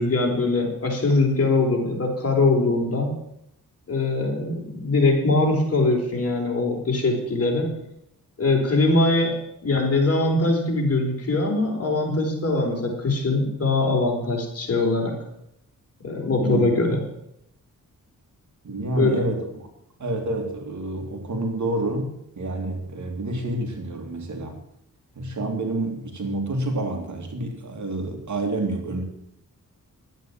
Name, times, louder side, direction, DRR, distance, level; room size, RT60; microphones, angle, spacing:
voice 1, 0.0-3.1 3.9-7.7 8.4-9.4 9.6-15.1 16.0-17.0 18.9-19.2, left 2 dB, 45° left, 0 dB, 4.3 m, -22 dB
voice 2, 18.6-19.6 20.0-24.6 25.1-29.0, right 2 dB, 60° right, 3 dB, 2.9 m, -28 dB
11.5 x 9.2 x 7.3 m, 0.79 s
cardioid pair, 80°, 33 cm